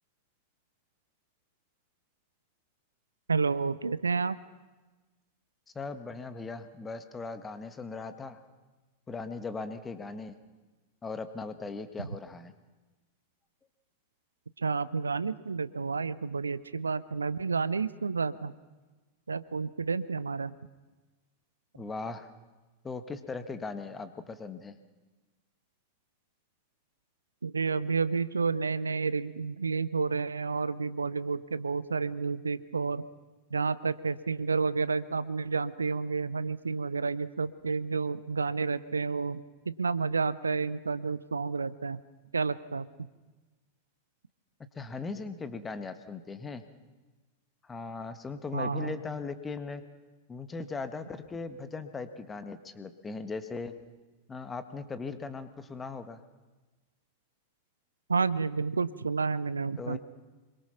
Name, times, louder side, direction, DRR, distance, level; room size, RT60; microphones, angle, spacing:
voice 1, 3.3-4.4 12.0-12.1 14.6-18.5 19.3-20.5 27.4-33.0 33.5-39.4 39.7-42.0 42.3-42.9 48.5-48.9 58.1-60.0, right 4 dB, 75° right, 17 dB, 0.6 m, -30 dB
voice 2, 5.7-8.4 9.1-10.4 11.0-12.5 21.7-22.3 22.8-24.7 44.7-46.6 47.6-49.8 50.3-53.7 54.3-56.2 59.8-60.0, left 4 dB, 15° left, 9 dB, 1.5 m, -39 dB
26.0 x 23.0 x 5.9 m, 1.2 s
figure-of-eight pair, 90°, 0 cm